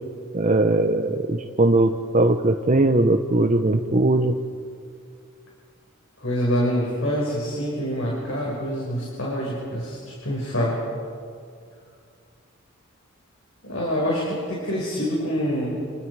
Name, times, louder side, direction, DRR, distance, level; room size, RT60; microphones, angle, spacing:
voice 1, 0.3-4.3, right 2 dB, 35° right, 5 dB, 0.9 m, -20 dB
voice 2, 6.2-10.8 13.6-15.8, equal, 70° left, -3 dB, 5.6 m, -26 dB
29.5 x 28.5 x 4.9 m, 2.3 s
head